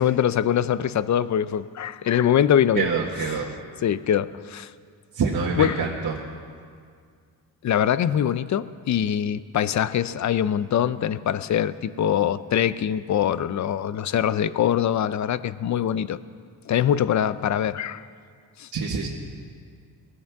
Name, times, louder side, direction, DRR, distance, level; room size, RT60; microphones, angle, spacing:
voice 1, 0.0-2.9 3.3-3.4 3.8-4.7 5.5-5.8 7.6-16.2 16.7-18.0 18.6-18.7, left 10 dB, 45° left, 16 dB, 0.6 m, -23 dB
voice 2, 2.8-3.5 5.1-6.1 18.7-19.1, right 5 dB, 55° right, -4 dB, 1.7 m, -25 dB
21.0 x 14.0 x 3.6 m, 2.1 s
cardioid pair, 85°, 39 cm